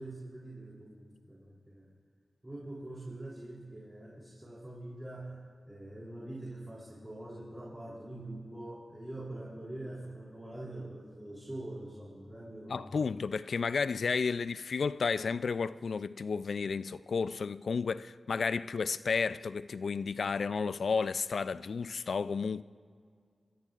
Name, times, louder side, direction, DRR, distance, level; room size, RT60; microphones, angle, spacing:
voice 1, 0.0-1.9 2.4-13.1, right 1 dB, 15° right, 3.4 m, -44 dB
voice 2, 12.7-22.6, left 5 dB, 75° left, 0.3 m, -32 dB
27.0 x 14.0 x 2.5 m
cardioid pair, 50°, 0 cm